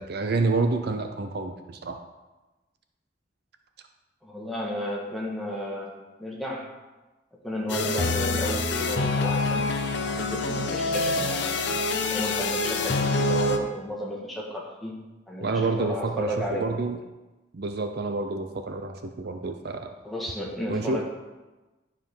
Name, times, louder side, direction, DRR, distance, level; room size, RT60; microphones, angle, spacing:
voice 1, 0.0-2.0 15.4-17.0 17.5-19.9 20.7-21.0, right 3 dB, 60° right, 6 dB, 0.6 m, -28 dB
voice 2, 4.2-6.7 7.4-9.7 10.1-11.6 12.1-15.0 15.3-16.7 20.0-21.0, left 1 dB, ahead, -4 dB, 1.7 m, -33 dB
sound 1, 7.7-13.6, left 2 dB, 75° left, 0.8 m, -26 dB
11.0 x 5.0 x 5.4 m, 1.1 s
head